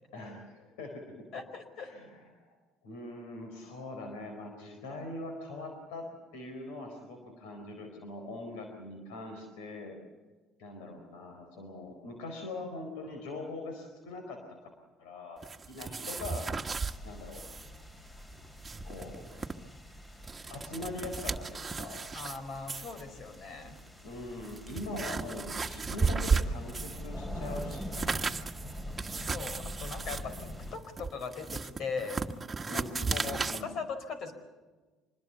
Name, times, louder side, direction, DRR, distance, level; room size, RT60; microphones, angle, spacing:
voice 1, 0.1-1.3 1.8-2.5 2.8-10.0 10.6-14.4 15.0-15.4 15.7-16.4 17.0-17.4 18.8-19.6 20.5-22.0 24.0-28.2 32.7-33.7, left 2 dB, 85° left, 4 dB, 4.4 m, -42 dB
voice 2, 1.3-1.9 22.1-23.8 29.2-32.2 32.7-32.8 33.1-34.3, left 5 dB, 60° left, 9 dB, 4.6 m, -39 dB
sound 1, 15.4-17.0 17.3-17.7 17.9-18.0 18.4-19.5 20.1-22.4 22.7-23.0 23.8-23.9 24.4-27.1 27.4-33.6, right 4 dB, 25° right, 1.5 m, -34 dB
sound 2, 16.8-30.8, left 1 dB, 25° left, 4.2 m, -44 dB
25.5 x 21.0 x 7.1 m, 1.3 s
supercardioid pair, 80°, 0 cm